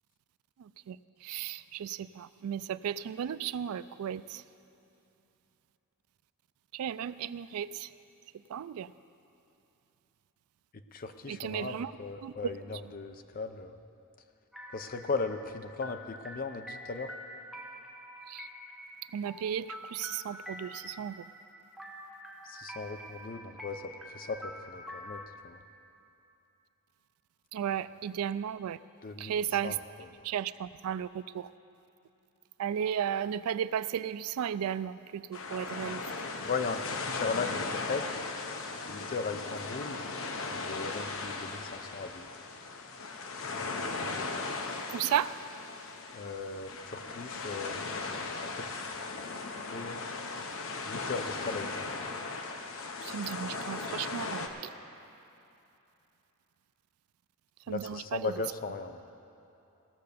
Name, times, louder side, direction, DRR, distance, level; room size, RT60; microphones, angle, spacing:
voice 1, 0.6-4.4 6.7-7.9 8.5-8.9 11.3-11.9 12.2-12.3 18.3-18.5 19.1-21.3 27.5-28.8 29.2-29.8 30.2-31.5 32.6-36.0 44.9-45.4 53.0-54.7 57.7-58.3, right 9 dB, 75° right, 16 dB, 0.3 m, -34 dB
voice 2, 10.7-13.8 14.7-17.1 22.4-25.6 29.0-29.4 29.6-30.1 36.4-38.2 38.9-40.0 40.5-42.3 46.1-48.8 49.6-50.0 50.9-52.0 57.7-59.0, left 4 dB, 40° left, 8 dB, 0.6 m, -38 dB
sound 1, 14.5-25.3, equal, ahead, 1.0 m, -46 dB
sound 2, 35.3-54.5, left 3 dB, 65° left, 0.9 m, -37 dB
17.0 x 6.6 x 6.8 m, 2.9 s
head